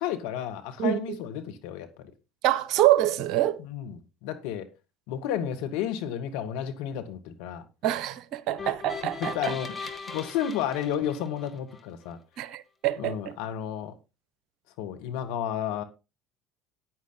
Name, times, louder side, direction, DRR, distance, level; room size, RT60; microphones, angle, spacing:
voice 1, 0.0-2.1 3.6-4.7 5.1-7.7 8.6-8.7 9.2-9.7 10.1-12.2 13.0-13.9 14.8-15.8, left 9 dB, 65° left, 1.8 m, -32 dB
voice 2, 0.8-1.2 2.4-3.6 7.8-9.5 12.4-13.3, right 13 dB, 60° right, 0.9 m, -25 dB
sound 1, 8.6-11.8, left 4 dB, 20° left, 2.1 m, -39 dB
9.7 x 9.2 x 4.0 m
hypercardioid pair, 70°, 0 cm